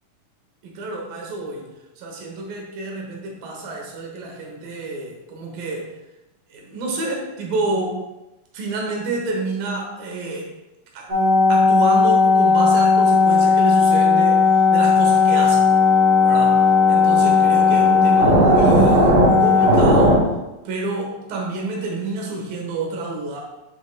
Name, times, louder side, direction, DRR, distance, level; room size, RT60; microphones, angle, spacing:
voice 1, 0.6-1.7 2.0-5.9 6.5-8.0 8.5-10.5 10.9-11.1 11.5-15.6 16.2-20.2 20.6-23.4, right 3 dB, 80° right, 0 dB, 2.8 m, -28 dB
sound 1, 11.1-20.2, left 4 dB, 40° right, 1.9 m, -15 dB
7.9 x 6.3 x 2.2 m, 0.97 s
omnidirectional pair, 4.1 m